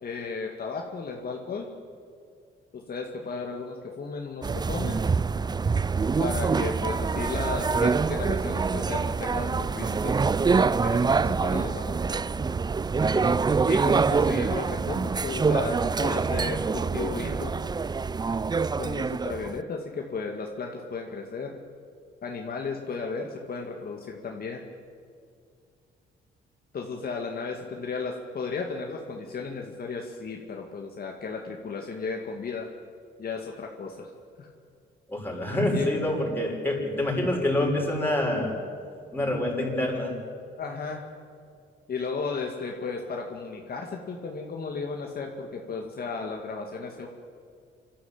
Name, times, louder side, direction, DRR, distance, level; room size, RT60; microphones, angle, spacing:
voice 1, 0.0-1.7 2.7-5.0 6.2-12.2 13.7-17.5 18.8-21.5 22.2-24.6 26.7-32.7 33.2-34.1 34.4-34.5 35.7-36.2 40.6-41.0 41.9-47.1, left 4 dB, 50° left, 1 dB, 2.2 m, -34 dB
sound 1, 4.4-19.6, right 4 dB, 20° right, 0.4 m, -25 dB
voice 2, 35.1-38.6 39.1-40.2, left 1 dB, 10° left, -1 dB, 6.4 m, -27 dB
27.0 x 13.0 x 8.8 m, 2.3 s
cardioid pair, 90°, 20 cm